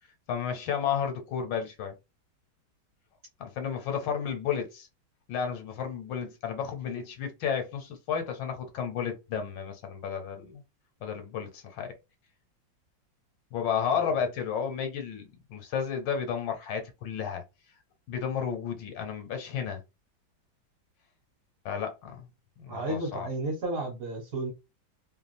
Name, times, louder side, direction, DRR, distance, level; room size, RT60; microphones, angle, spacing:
voice 1, 0.3-1.9 3.4-4.9 5.3-10.6 11.0-11.9 13.5-17.4 18.1-19.8 21.6-22.3 22.6-23.3, left 7 dB, 70° left, 1.4 m, -32 dB
voice 2, 13.9-14.2 22.7-24.5, right 2 dB, 50° right, 1.3 m, -33 dB
3.2 x 2.3 x 2.5 m
omnidirectional pair, 2.1 m